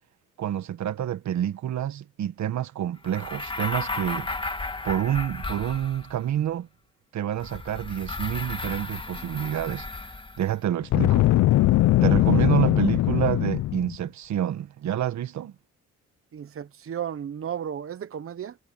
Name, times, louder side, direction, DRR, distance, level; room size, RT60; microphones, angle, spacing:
voice 1, 0.4-4.3 4.8-6.7 7.1-9.9 10.4-11.3 12.0-15.5, right 11 dB, 65° right, 1.6 m, -28 dB
sound 1, 3.0-6.3 7.4-10.5, left 3 dB, 15° left, 1.8 m, -34 dB
Boom, 10.8-14.0, left 15 dB, 75° left, 0.6 m, -20 dB
voice 2, 16.3-18.6, right 9 dB, 45° right, 1.0 m, -34 dB
cardioid pair, 90°, 30 cm